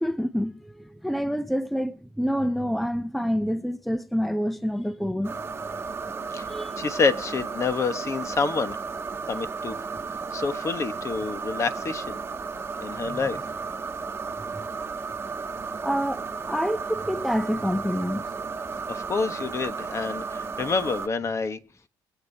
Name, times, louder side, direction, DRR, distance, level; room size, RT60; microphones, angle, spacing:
voice 1, 0.0-5.3 6.5-6.7 13.1-13.3 15.8-18.2, equal, ahead, 0.6 m, -27 dB
sound 1, 5.2-21.1, right 5 dB, 30° right, 1.4 m, -34 dB
voice 2, 6.3-8.8 9.3-9.7 10.3-12.2 12.8-13.4 18.9-21.6, left 4 dB, 35° left, 1.3 m, -28 dB
23.5 x 8.2 x 2.8 m
cardioid pair, 100°, 8 cm